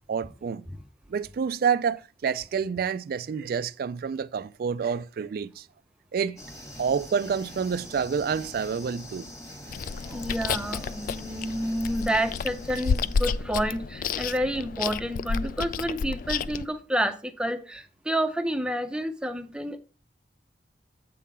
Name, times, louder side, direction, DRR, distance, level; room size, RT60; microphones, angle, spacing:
voice 1, 0.1-0.7 1.1-5.7 6.1-6.4 6.8-9.3, right 6 dB, 60° right, 0.3 m, -28 dB
sound 1, 6.4-13.4, left 1 dB, 15° left, 1.6 m, -44 dB
Chewing mastication, 9.7-16.7, left 5 dB, 50° left, 0.3 m, -31 dB
voice 2, 10.1-19.8, equal, 5° right, 0.5 m, -29 dB
8.4 x 3.7 x 5.5 m
head